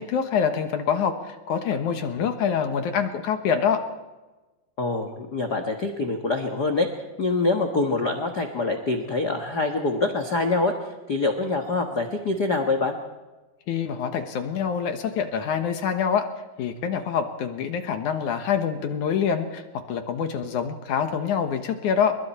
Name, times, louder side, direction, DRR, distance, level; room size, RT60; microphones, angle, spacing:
voice 1, 0.0-3.8 13.7-16.3 16.6-22.2, left 7 dB, 65° left, 7 dB, 2.5 m, -25 dB
voice 2, 4.8-6.9 7.2-10.7 11.1-12.9, left 3 dB, 45° left, 5 dB, 1.3 m, -25 dB
30.0 x 21.0 x 4.4 m, 1.2 s
omnidirectional pair, 4.2 m